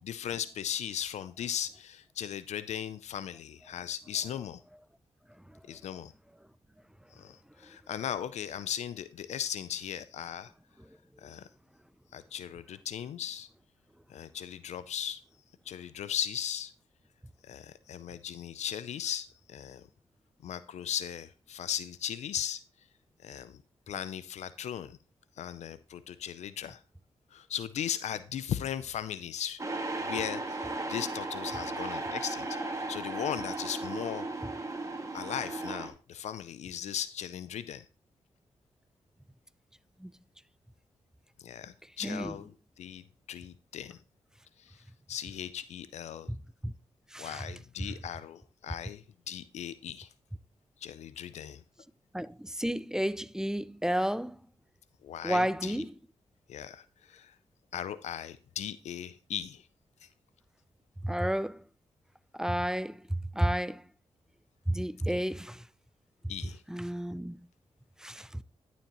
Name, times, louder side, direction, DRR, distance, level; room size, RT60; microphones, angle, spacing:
voice 1, 0.0-4.6 5.7-6.1 7.1-10.5 11.2-11.5 12.1-13.5 14.1-15.2 15.7-16.7 17.4-19.8 20.4-22.6 23.2-23.6 23.9-25.0 25.4-26.8 27.3-29.6 30.0-34.3 35.1-37.8 41.4-43.0 43.3-44.0 44.6-46.3 47.2-50.1 50.8-51.6 55.0-55.9 56.5-57.3 57.7-59.7 66.3-66.6, left 9 dB, 75° left, 0.4 m, -37 dB
sound 1, 29.6-35.9, right 2 dB, 25° right, 1.9 m, -36 dB
voice 2, 42.0-42.3 46.3-46.4 46.6-46.7 47.1-47.5 52.1-54.4 55.2-55.9 61.0-61.6 62.4-63.0 63.3-63.8 64.7-65.6 66.7-67.4 68.0-68.4, equal, 5° right, 0.5 m, -31 dB
11.5 x 7.2 x 3.0 m
supercardioid pair, 45°, 12 cm